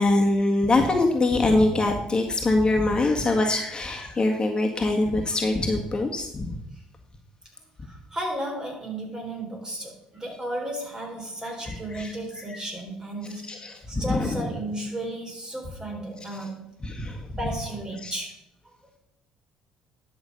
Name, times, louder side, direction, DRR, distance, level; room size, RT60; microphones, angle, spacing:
voice 1, 0.0-6.6 11.6-12.6 13.5-14.5 16.8-17.3 18.0-18.1, left 2 dB, 30° left, 2 dB, 1.7 m, -24 dB
voice 2, 7.8-13.6 13.9-16.7 17.4-18.4, right 1 dB, 25° right, 2 dB, 3.7 m, -34 dB
11.0 x 6.3 x 5.3 m, 0.83 s
hypercardioid pair, 60°, 3 cm